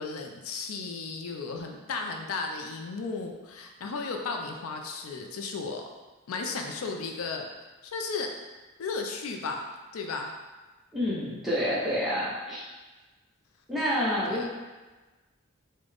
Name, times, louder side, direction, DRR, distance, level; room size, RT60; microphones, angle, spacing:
voice 1, 0.0-5.8 6.3-7.5 7.8-8.3 8.8-9.7 9.9-10.3 14.3-14.5, left 4 dB, 90° left, 3 dB, 0.4 m, -34 dB
voice 2, 10.9-12.6 13.7-14.5, equal, ahead, -8 dB, 0.7 m, -28 dB
3.8 x 2.1 x 3.4 m, 1.2 s
head